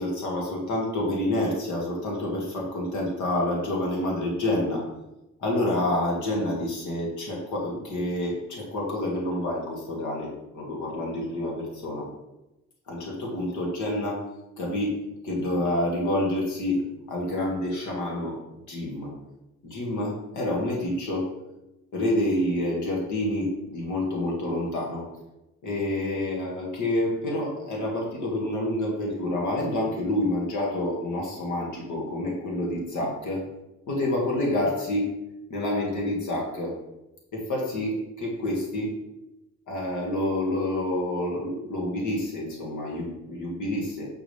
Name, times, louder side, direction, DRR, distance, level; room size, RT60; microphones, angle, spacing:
voice 1, 0.0-4.8 5.4-12.1 12.9-14.2 14.6-19.1 19.6-21.4 21.9-25.1 25.6-33.5 33.9-35.1 35.5-36.7 37.3-38.9 39.7-44.1, left 1 dB, 75° left, -2 dB, 2.4 m, -28 dB
7.8 x 6.2 x 3.5 m, 0.93 s
cardioid pair, 90°, 30 cm